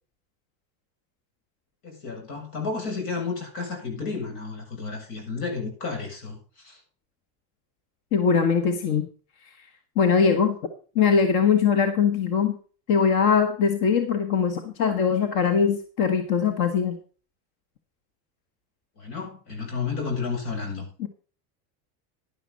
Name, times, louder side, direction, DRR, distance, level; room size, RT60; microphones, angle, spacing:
voice 1, 1.8-6.8 19.0-20.9, left 4 dB, 85° left, 7.6 m, -32 dB
voice 2, 8.1-9.1 10.0-10.6 11.0-12.6 12.9-17.0 21.0-21.1, left 6 dB, 55° left, 1.6 m, -21 dB
11.0 x 11.0 x 4.1 m
cardioid pair, 150°, 45 cm